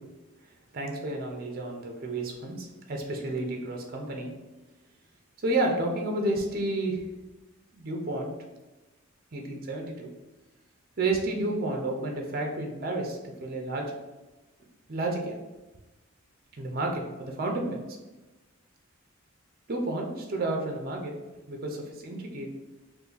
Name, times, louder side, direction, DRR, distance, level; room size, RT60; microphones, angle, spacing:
voice 1, 0.7-4.3 5.4-7.0 7.7-8.3 9.3-10.1 11.0-13.9 14.9-15.3 16.6-17.8 19.7-21.1 21.5-22.5, right 2 dB, 45° right, 2 dB, 0.5 m, -31 dB
2.6 x 2.6 x 3.8 m, 1.1 s
head